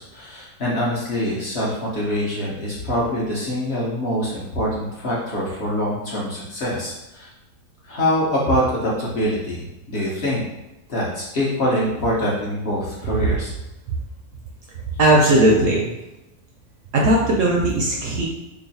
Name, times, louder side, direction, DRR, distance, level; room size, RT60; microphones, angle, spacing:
voice 1, 0.0-7.3 7.9-10.4 10.9-13.5, equal, 50° left, -5 dB, 0.9 m, -24 dB
voice 2, 15.0-15.9 16.9-18.3, right 1 dB, 70° right, -1 dB, 0.8 m, -17 dB
3.0 x 2.4 x 4.0 m, 0.97 s
omnidirectional pair, 1.6 m